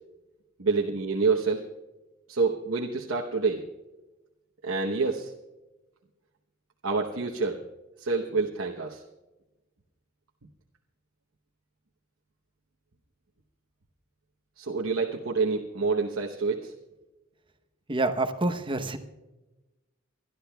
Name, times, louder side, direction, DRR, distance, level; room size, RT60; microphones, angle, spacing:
voice 1, 0.6-1.6 2.3-3.7 4.6-5.3 6.8-7.6 8.0-9.0 14.6-16.7, right 4 dB, 85° right, 0 dB, 1.0 m, -27 dB
voice 2, 17.9-19.0, right 2 dB, 25° right, 8 dB, 0.8 m, -27 dB
29.0 x 12.0 x 2.3 m, 1.1 s
head